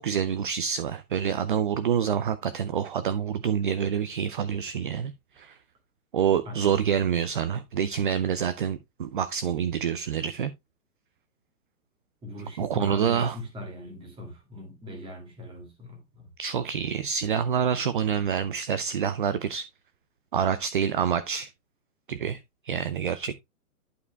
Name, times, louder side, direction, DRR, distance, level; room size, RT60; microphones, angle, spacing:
voice 1, 0.0-5.6 6.1-10.5 12.6-13.3 16.4-19.7 20.3-21.5 22.1-22.4 22.6-23.3, right 8 dB, 40° right, 0.4 m, -27 dB
voice 2, 6.5-6.8 12.2-16.3, equal, 10° right, 2.2 m, -39 dB
11.0 x 4.9 x 3.2 m
hypercardioid pair, 160°, 44 cm